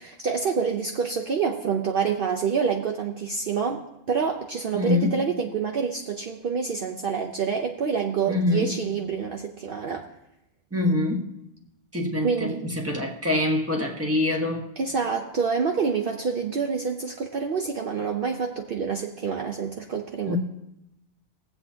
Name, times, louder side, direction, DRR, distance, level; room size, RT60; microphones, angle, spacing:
voice 1, 0.0-3.8 4.1-10.0 12.2-12.6 14.8-20.4, right 6 dB, 55° right, 3 dB, 0.9 m, -27 dB
voice 2, 4.7-5.3 8.3-8.7 10.7-11.3 11.9-14.7 20.3-20.4, left 2 dB, 10° right, 1 dB, 1.4 m, -25 dB
22.0 x 7.7 x 2.8 m, 0.85 s
omnidirectional pair, 1.2 m